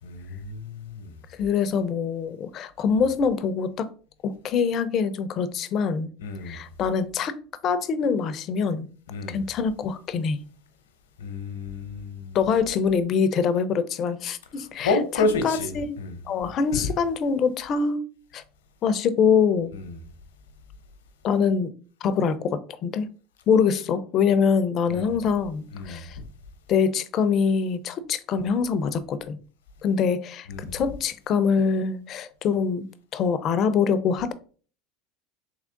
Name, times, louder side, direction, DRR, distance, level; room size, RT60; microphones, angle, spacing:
voice 1, 0.0-1.2 6.2-6.6 9.1-9.5 11.2-12.4 14.5-16.2 16.4-16.9 19.7-20.0 24.9-25.2 25.7-26.3 30.5-30.8, left 3 dB, 85° left, 0.8 m, -30 dB
voice 2, 1.4-3.9 4.2-6.1 6.4-7.4 7.6-8.9 9.3-10.4 12.3-14.9 15.4-16.0 16.3-18.0 18.3-18.4 18.8-19.7 21.2-21.7 22.0-23.1 23.5-26.2 26.7-29.4 29.8-32.9 33.1-34.3, left 6 dB, 45° left, 0.5 m, -24 dB
3.6 x 3.1 x 3.8 m
hypercardioid pair, 90°, 0 cm